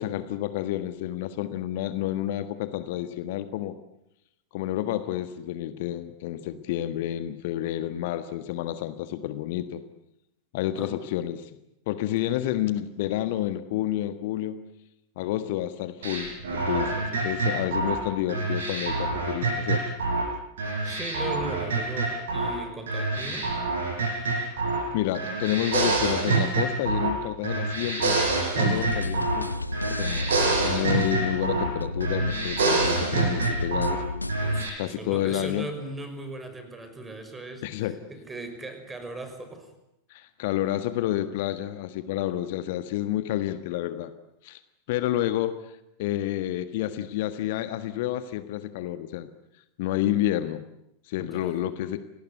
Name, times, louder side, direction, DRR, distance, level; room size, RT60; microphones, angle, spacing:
voice 1, 0.0-3.7 4.5-9.8 10.5-11.6 11.9-14.6 15.2-19.8 24.9-28.2 28.5-29.5 29.8-30.3 30.6-34.0 34.8-35.7 37.6-37.9 40.1-44.1 44.4-44.6 44.9-49.3 49.8-50.6 51.1-52.0, left 13 dB, 50° left, 11 dB, 1.5 m, -29 dB
sound 1, 16.0-20.3 20.6-22.6 22.9-24.9 25.1-27.2 27.4-29.5 29.7-31.7 32.0-34.0 34.3-34.7, right 3 dB, 65° right, 6.9 m, -26 dB
voice 2, 20.8-23.6 34.4-39.7 51.2-51.5, right 2 dB, 10° right, 8 dB, 5.9 m, -38 dB
sound 2, 28.7-34.6, left 2 dB, 85° left, 0.9 m, -32 dB
28.5 x 19.5 x 9.5 m, 0.85 s
figure-of-eight pair, 90°, 0 cm